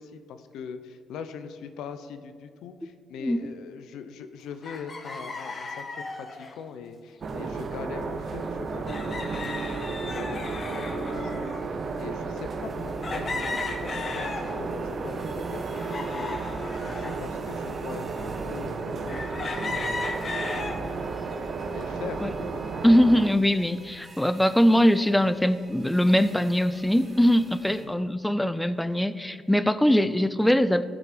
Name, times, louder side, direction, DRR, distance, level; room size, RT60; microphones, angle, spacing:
voice 1, 0.0-21.2 21.7-22.7 27.6-28.0, left 6 dB, 85° left, 9 dB, 0.7 m, -42 dB
sound 1, 4.6-6.6 7.7-7.9 8.1-8.2 8.9-11.7 12.2-12.3 13.0-14.8 15.2-17.2 17.8-17.9 19.1-20.8 21.3-21.8, left 3 dB, 40° left, 1.2 m, -35 dB
sound 2, 7.2-23.3, right 4 dB, 50° right, 0.7 m, -33 dB
sound 3, 12.6-27.9, right 1 dB, 30° right, 2.7 m, -51 dB
voice 2, 22.8-30.8, equal, 5° left, 14 dB, 0.4 m, -22 dB
14.0 x 6.1 x 5.2 m, 2.1 s
cardioid pair, 90°, 0 cm